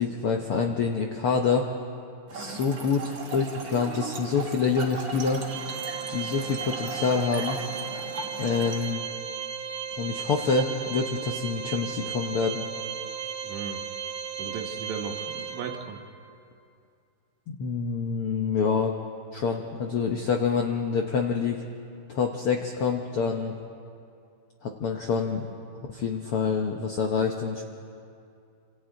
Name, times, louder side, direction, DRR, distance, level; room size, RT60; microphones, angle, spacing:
voice 1, 0.0-1.7 2.3-5.4 6.1-7.6 8.4-9.1 10.0-12.6 17.5-18.9 19.3-21.6 22.1-23.5 24.6-25.5 25.9-27.6, left 5 dB, 75° left, 2 dB, 1.2 m, -26 dB
Trickle dribble / Fill (with liquid), 2.3-8.9, right 3 dB, 40° right, 2.0 m, -38 dB
Organ, 5.5-16.1, right 7 dB, 65° right, 2.9 m, -35 dB
voice 2, 13.4-13.8 14.4-16.0, right 6 dB, 85° right, 4 dB, 3.0 m, -36 dB
30.0 x 26.5 x 3.9 m, 2.5 s
omnidirectional pair, 3.9 m